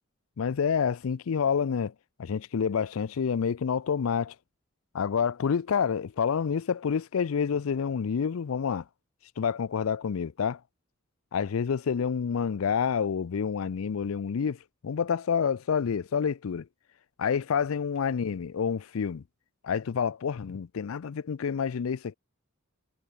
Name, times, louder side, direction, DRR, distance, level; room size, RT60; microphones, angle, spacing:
voice 1, 0.4-1.9 2.2-4.3 4.9-8.8 9.4-10.6 11.3-14.6 14.8-16.7 17.2-19.2 19.6-22.1, left 6 dB, 85° left, 0.4 m, -28 dB
head